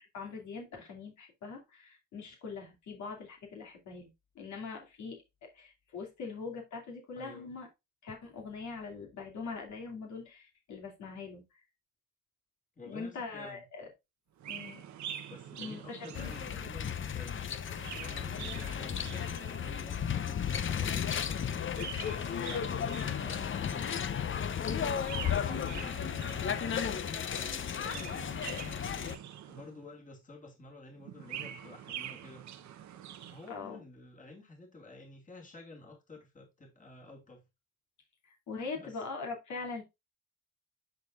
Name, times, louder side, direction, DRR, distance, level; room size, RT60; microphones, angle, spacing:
voice 1, 0.0-4.1 4.3-7.7 8.0-11.6 12.8-13.9 14.5-14.9 15.6-16.4 33.5-33.8 38.2-39.8, left 4 dB, 70° left, 2.6 m, -42 dB
voice 2, 7.1-7.6 12.8-13.7 15.3-17.5 18.0-21.6 22.0-24.1 24.6-25.9 26.5-28.6 29.5-32.5 33.3-37.5 38.7-39.0, left 2 dB, 25° left, 2.4 m, -50 dB
Chirp tweet, 14.4-16.8 17.5-20.0 21.5-23.7 24.9-26.8 27.6-29.9 31.0-33.5, right 10 dB, 70° right, 0.9 m, -45 dB
sound 1, 16.1-29.2, left 8 dB, 40° left, 0.8 m, -34 dB
10.5 x 4.4 x 2.5 m
cardioid pair, 90°, 30 cm